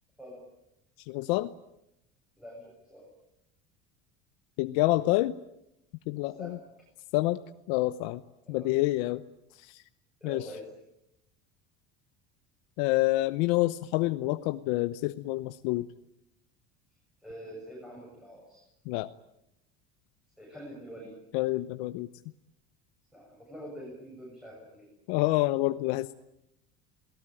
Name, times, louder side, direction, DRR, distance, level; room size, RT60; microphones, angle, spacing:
voice 1, 1.1-1.5 4.6-5.4 6.1-6.6 7.1-7.4 7.7-8.2 8.5-9.2 9.6-9.8 10.2-10.5 12.8-15.9 18.9-19.1 21.3-22.1 25.1-26.1, left 18 dB, 85° left, 10 dB, 0.9 m, -27 dB
voice 2, 2.4-3.1 6.4-6.6 8.5-8.7 10.2-10.7 17.2-18.7 20.4-21.1 23.1-24.9, equal, ahead, -3 dB, 7.3 m, -45 dB
28.5 x 18.5 x 9.1 m, 0.85 s
cardioid pair, 170°, 29 cm